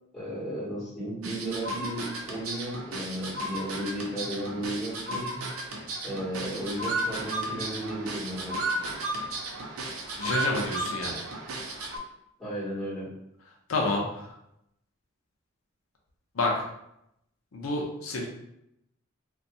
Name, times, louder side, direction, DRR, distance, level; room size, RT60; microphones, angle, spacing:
voice 1, 0.1-5.5 6.0-8.6 12.4-13.1, right 1 dB, ahead, -10 dB, 1.4 m, -34 dB
sound 1, 1.2-12.0, right 2 dB, 80° right, 0.5 m, -34 dB
voice 2, 10.2-11.2 13.7-14.3 16.3-16.6 17.5-18.3, left 2 dB, 85° left, -1 dB, 0.5 m, -29 dB
2.6 x 2.2 x 2.7 m, 0.80 s
head